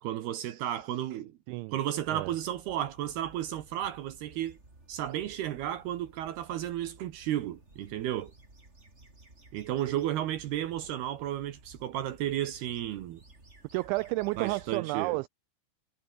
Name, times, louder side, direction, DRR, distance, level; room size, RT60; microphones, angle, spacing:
voice 1, 0.0-1.3 1.7-4.6 4.9-8.3 9.5-13.2 14.4-15.2, right 12 dB, 70° right, 2.6 m, -33 dB
voice 2, 1.5-1.8 2.1-2.3 13.7-15.3, right 23 dB, 90° right, 2.6 m, -32 dB
sound 1, 1.9-14.8, right 2 dB, 15° right, 4.5 m, -56 dB
omnidirectional pair, 5.8 m